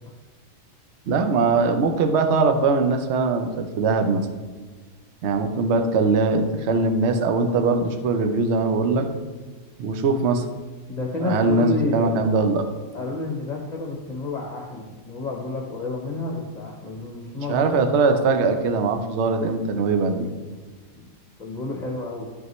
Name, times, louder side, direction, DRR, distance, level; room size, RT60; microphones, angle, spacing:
voice 1, 1.1-4.3 5.2-9.1 9.8-10.5 11.2-12.7 17.5-20.3, right 4 dB, 60° right, 6 dB, 0.9 m, -21 dB
voice 2, 10.9-12.2 12.9-17.8 21.0-21.1 21.4-22.3, left 2 dB, 35° left, -2 dB, 1.0 m, -30 dB
11.5 x 5.5 x 3.1 m, 1.4 s
omnidirectional pair, 1.5 m